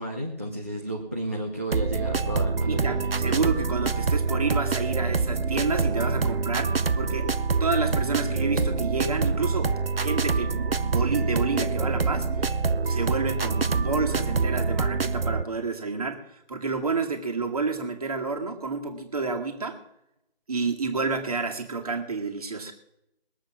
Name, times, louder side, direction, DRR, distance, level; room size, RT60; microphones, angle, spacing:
voice 1, 0.0-3.0, right 1 dB, 15° right, 0 dB, 0.6 m, -32 dB
sound 1, 1.7-15.4, right 4 dB, 70° right, 0.8 m, -26 dB
voice 2, 2.7-7.3 7.6-12.3 12.7-19.8 20.5-22.7, right 4 dB, 35° right, 4 dB, 2.1 m, -29 dB
21.0 x 7.8 x 6.0 m, 0.83 s
figure-of-eight pair, 160°, 31 cm